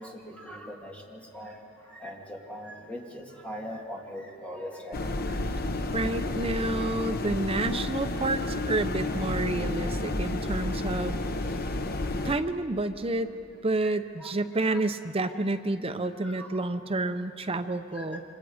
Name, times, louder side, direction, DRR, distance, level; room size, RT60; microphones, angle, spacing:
voice 1, 0.0-1.6 1.8-5.4 6.2-6.3 7.6-7.8 10.5-10.8 13.7-14.8 15.2-15.4 16.2-16.6 17.9-18.1, equal, 5° left, -1 dB, 2.5 m, -42 dB
sound 1, 4.9-12.4, left 2 dB, 50° left, 0.9 m, -31 dB
voice 2, 5.9-11.2 12.2-13.3 13.6-18.2, right 2 dB, 30° right, 8 dB, 0.7 m, -29 dB
27.5 x 25.0 x 5.0 m, 2.6 s
head